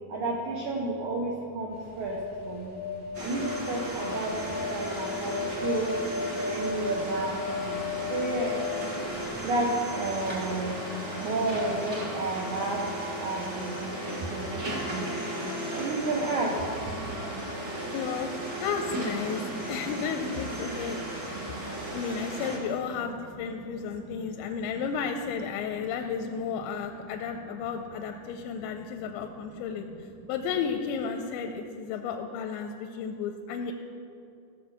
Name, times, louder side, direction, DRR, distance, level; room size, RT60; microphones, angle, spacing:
voice 1, 0.1-2.2 2.4-2.8 3.2-6.0 6.5-8.6 9.4-10.8 11.1-15.1 15.7-16.7 19.7-19.8 20.1-20.2 20.8-21.9 23.0-23.1 23.5-24.7 25.6-25.9 26.8-27.5 28.3-29.0 29.5-30.3, right 2 dB, 75° right, -1 dB, 1.8 m, -33 dB
sound 1, 1.7-9.9 10.2-10.4, left 5 dB, 15° right, 0.3 m, -35 dB
sound 2, 3.1-22.6, right 1 dB, 45° right, 1.4 m, -35 dB
voice 2, 17.9-18.3 18.6-21.0 21.9-29.9 30.3-33.7, left 6 dB, 85° left, 5 dB, 2.9 m, -33 dB
15.0 x 6.2 x 7.5 m, 2.4 s
omnidirectional pair, 5.2 m